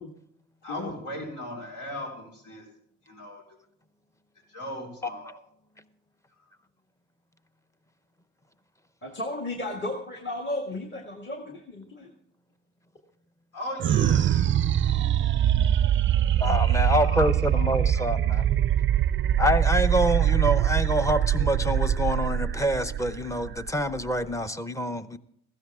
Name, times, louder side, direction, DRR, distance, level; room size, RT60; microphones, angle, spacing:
voice 1, 0.6-2.7 3.0-3.4 4.5-5.4 13.5-14.9 16.9-17.2 17.5-17.7 17.9-18.0, left 1 dB, 85° left, 4.7 m, -38 dB
voice 2, 9.0-12.1, left 1 dB, 35° left, 1.8 m, -34 dB
sound 1, 13.8-24.5, right 10 dB, 40° right, 0.4 m, -23 dB
voice 3, 16.4-18.4 19.4-25.2, equal, 10° left, 0.7 m, -26 dB
15.0 x 13.0 x 3.6 m
cardioid pair, 90°, 30 cm